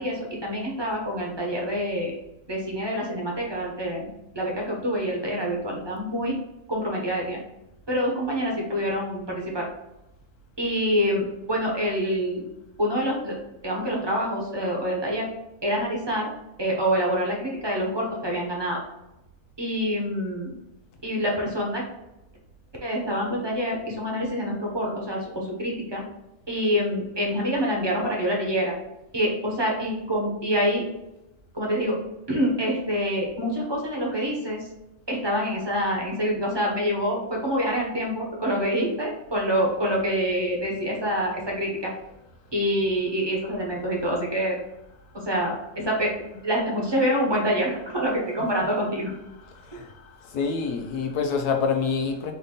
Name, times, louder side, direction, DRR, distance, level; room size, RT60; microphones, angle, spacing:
voice 1, 0.0-2.1 2.5-4.1 4.3-6.4 6.7-7.4 7.9-9.6 10.6-12.4 12.8-13.4 13.6-15.3 15.6-16.3 16.6-18.8 19.6-20.5 21.0-21.8 22.8-26.0 26.5-28.7 29.1-30.8 31.5-32.0 32.3-34.7 35.1-41.9 42.5-44.5 45.3-46.1 46.4-49.1, equal, 20° right, -2 dB, 0.8 m, -26 dB
voice 2, 50.3-52.3, left 5 dB, 85° left, 3 dB, 1.3 m, -26 dB
4.7 x 2.7 x 3.7 m, 0.91 s
omnidirectional pair, 1.6 m